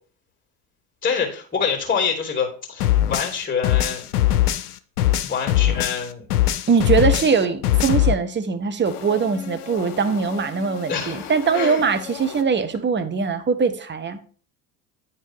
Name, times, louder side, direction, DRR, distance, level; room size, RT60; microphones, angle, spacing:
voice 1, 1.0-4.0 5.2-6.3 7.1-7.2 10.9-11.8, left 6 dB, 20° left, 1 dB, 3.0 m, -26 dB
sound 1, 2.8-6.1 6.3-8.1, left 13 dB, 90° left, 0.6 m, -20 dB
voice 2, 6.7-14.2, right 5 dB, 25° right, 10 dB, 1.1 m, -21 dB
sound 2, 8.9-12.9, left 11 dB, 65° left, 1.1 m, -38 dB
9.4 x 4.6 x 4.6 m, 0.42 s
hypercardioid pair, 70°, 45 cm